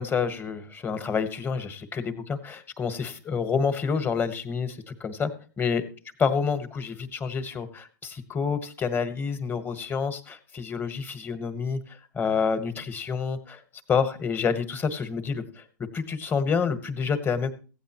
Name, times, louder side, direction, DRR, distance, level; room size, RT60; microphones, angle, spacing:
voice 1, 0.0-5.8 6.2-11.8 12.1-13.6 13.9-15.4 15.9-17.5, left 6 dB, 20° left, 10 dB, 1.3 m, -28 dB
15.5 x 9.2 x 3.0 m, 0.36 s
hypercardioid pair, 120°, 11 cm